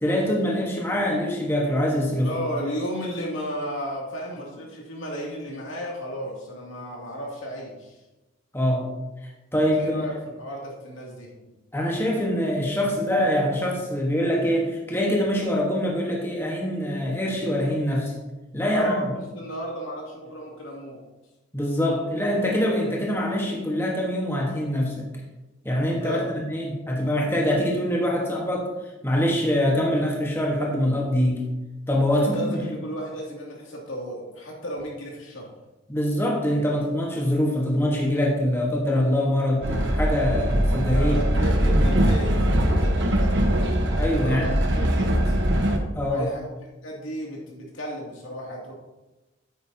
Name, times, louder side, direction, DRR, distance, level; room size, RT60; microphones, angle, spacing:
voice 1, 0.0-2.3 8.5-8.9 9.5-10.0 11.7-18.1 18.5-19.1 21.5-25.0 25.6-28.7 29.0-31.4 31.9-32.6 35.9-41.1 44.0-44.4 45.9-46.3, equal, 10° left, -2 dB, 1.2 m, -24 dB
voice 2, 2.2-8.0 9.7-11.5 18.7-21.0 26.0-26.3 32.1-35.5 40.9-43.7 44.2-45.4 46.1-48.7, equal, 80° left, -2 dB, 2.5 m, -34 dB
Train, 39.6-45.8, equal, 60° right, 1.1 m, -21 dB
9.0 x 9.0 x 2.8 m, 1.1 s
head